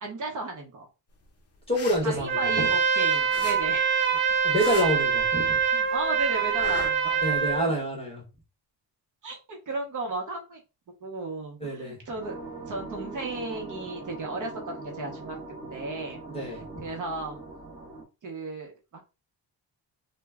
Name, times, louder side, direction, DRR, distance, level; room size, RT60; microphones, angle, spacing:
voice 1, 0.0-0.9 2.0-4.1 5.5-7.2 9.2-10.6 11.0-12.4 12.7-15.4 15.7-17.4 18.2-19.0, right 3 dB, 45° right, 1 dB, 0.8 m, -35 dB
sound 1, 1.5-3.0 3.3-5.7 5.9-7.6, left 4 dB, 35° left, 0.6 m, -40 dB
voice 2, 1.7-2.7 4.4-5.6 7.2-8.2 11.6-12.0 16.3-16.9, equal, 15° left, -1 dB, 1.2 m, -27 dB
Trumpet, 2.3-7.7, right 6 dB, 30° right, 0.5 m, -25 dB
sound 2, 12.2-18.0, right 2 dB, 10° right, 0.8 m, -41 dB
3.0 x 2.2 x 3.5 m, 0.29 s
cardioid pair, 165°, 42 cm